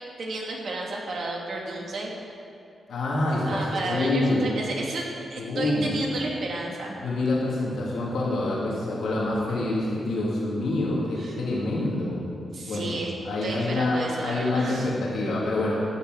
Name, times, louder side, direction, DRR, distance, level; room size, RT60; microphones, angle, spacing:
voice 1, 0.2-2.1 3.4-5.0 5.3-7.0 11.2-11.4 12.5-13.1 13.4-14.9, right 2 dB, 70° right, -2 dB, 2.6 m, -32 dB
voice 2, 2.9-4.4 5.3-6.0 7.0-12.2 12.7-12.9 13.2-15.8, left 2 dB, 80° left, -5 dB, 2.7 m, -26 dB
13.0 x 6.8 x 8.3 m, 2.5 s
cardioid pair, 75°, 0 cm